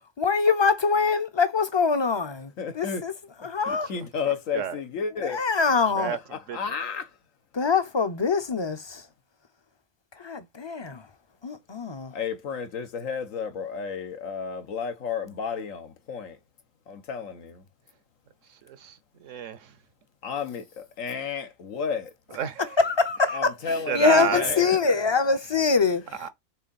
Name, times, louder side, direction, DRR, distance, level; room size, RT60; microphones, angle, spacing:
voice 1, 0.2-3.1 3.4-3.9 5.2-6.1 7.5-9.0 10.2-11.1 11.4-12.1 22.8-23.5 23.9-26.3, left 4 dB, 30° left, 0.5 m, -24 dB
voice 2, 2.6-3.0 3.6-5.4 6.3-7.1 12.1-16.4 16.9-17.6 20.2-22.1 23.3-24.6, left 6 dB, 80° left, 1.4 m, -32 dB
voice 3, 18.7-19.6 22.3-22.8 23.9-24.8 26.2-26.3, right 8 dB, 75° right, 1.2 m, -30 dB
6.5 x 3.7 x 4.1 m
omnidirectional pair, 1.4 m